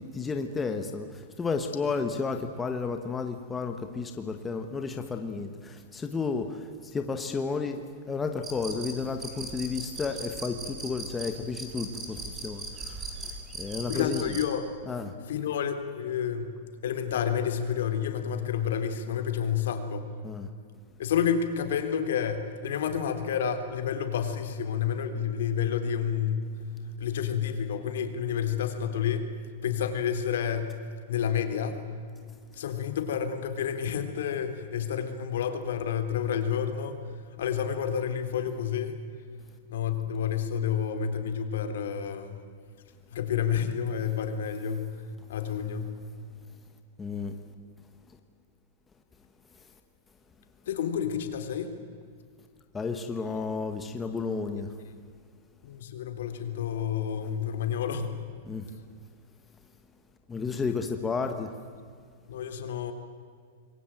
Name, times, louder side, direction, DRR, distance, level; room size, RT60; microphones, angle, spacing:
voice 1, 0.0-6.6 6.9-13.3 13.6-14.2 14.9-15.1 20.2-20.5 47.0-47.3 52.7-54.7 58.4-58.7 60.3-61.5, left 4 dB, 10° left, 5 dB, 1.2 m, -32 dB
sound 1, 8.4-14.5, right 3 dB, 15° right, 3.8 m, -39 dB
voice 2, 13.8-14.7 15.3-16.5 16.8-20.1 21.0-26.5 27.0-29.3 29.6-30.7 31.1-31.8 32.5-37.0 37.4-39.0 39.7-42.4 43.1-45.0 45.3-46.0 50.7-51.7 55.6-58.1 62.3-62.9, left 8 dB, 70° left, 7 dB, 3.7 m, -29 dB
27.5 x 22.0 x 9.1 m, 2.1 s
supercardioid pair, 175°, 0 cm